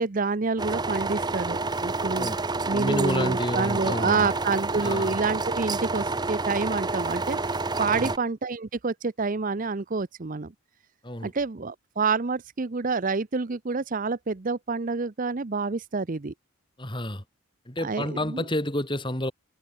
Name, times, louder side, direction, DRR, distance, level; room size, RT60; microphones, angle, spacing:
voice 1, 0.0-2.3 2.7-10.5 11.2-16.3 17.8-18.4, right 4 dB, 40° right, 0.6 m, -28 dB
sound 1, 0.6-8.2, right 3 dB, 20° right, 1.0 m, -29 dB
voice 2, 2.7-4.3 4.8-5.2 7.9-8.1 11.0-11.3 16.8-17.2 17.6-19.3, left 1 dB, 20° left, 5.0 m, -30 dB
head